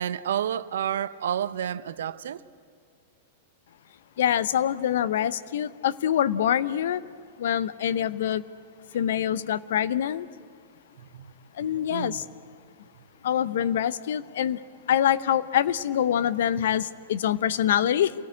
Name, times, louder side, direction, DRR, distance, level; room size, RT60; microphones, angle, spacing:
voice 1, 0.0-2.4 11.1-11.3 11.9-12.2, right 9 dB, 70° right, 0.8 m, -30 dB
voice 2, 4.2-7.0 7.4-8.4 8.9-10.3 11.6-12.2 13.2-14.6 14.9-18.1, left 10 dB, 65° left, 0.7 m, -25 dB
28.0 x 19.0 x 8.7 m
hypercardioid pair, 100°, 0 cm